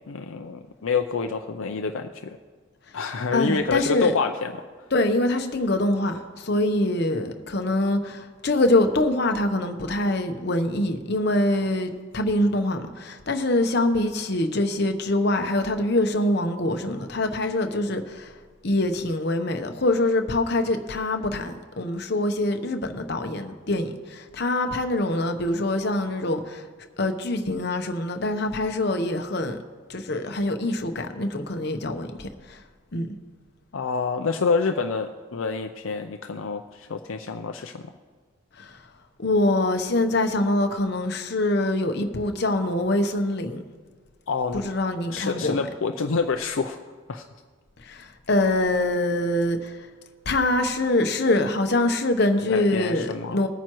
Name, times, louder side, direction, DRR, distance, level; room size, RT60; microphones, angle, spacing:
voice 1, 0.1-2.4 2.9-4.9 33.7-37.9 44.3-44.6 45.1-46.8 47.1-47.2 52.5-53.4, left 4 dB, 70° left, 5 dB, 0.5 m, -27 dB
voice 2, 3.3-4.1 4.9-18.3 18.6-26.6 27.0-29.6 29.9-32.6 32.9-33.1 38.6-38.8 39.2-43.6 44.5-45.6 47.8-49.8 50.3-53.5, left 1 dB, 50° left, 6 dB, 0.9 m, -24 dB
20.5 x 9.2 x 3.0 m, 1.5 s
head